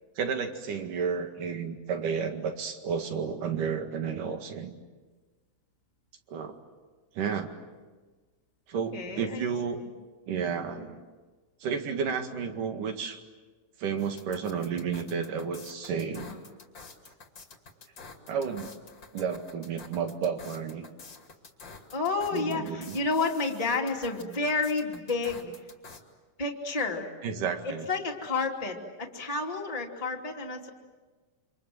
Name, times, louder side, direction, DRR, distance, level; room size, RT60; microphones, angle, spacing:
voice 1, 0.2-4.7 6.3-6.6 7.2-7.5 8.7-9.8 10.3-11.0 11.6-13.2 13.8-16.3 18.3-18.7 19.1-20.9 22.3-23.0 27.2-27.9, right 6 dB, 75° right, 5 dB, 3.6 m, -32 dB
voice 2, 8.7-9.5 9.8-9.9 16.2-16.4 21.9-25.5 26.4-27.1 27.6-30.7, left 3 dB, 10° left, -1 dB, 2.5 m, -30 dB
sound 1, 14.0-26.0, left 4 dB, 35° left, 2.8 m, -49 dB
28.5 x 26.5 x 7.9 m, 1.3 s
omnidirectional pair, 3.8 m